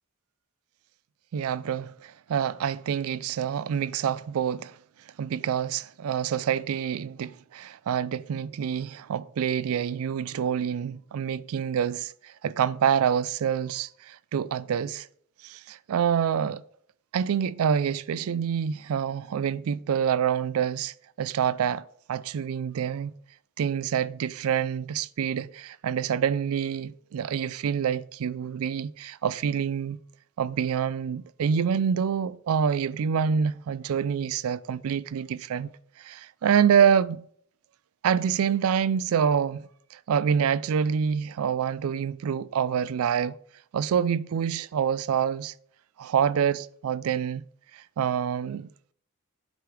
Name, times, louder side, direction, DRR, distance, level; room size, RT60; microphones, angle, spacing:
voice 1, 1.3-4.8 5.2-15.1 15.4-16.6 17.1-21.8 22.1-23.1 23.6-30.0 30.4-37.2 38.0-43.4 43.7-45.5 46.0-47.4 47.7-48.7, right 7 dB, 75° right, 0.4 m, -27 dB
7.9 x 5.0 x 4.7 m
head